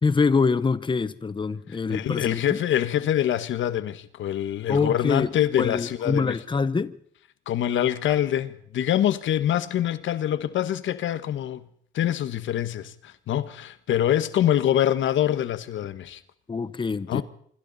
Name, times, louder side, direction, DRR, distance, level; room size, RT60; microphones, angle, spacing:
voice 1, 0.0-2.6 4.7-7.0 16.5-17.2, left 4 dB, 25° left, 1.0 m, -25 dB
voice 2, 1.9-6.4 7.5-11.6 11.9-16.2 17.1-17.2, left 11 dB, 75° left, 1.4 m, -25 dB
26.0 x 25.5 x 4.2 m
cardioid pair, 90°, 20 cm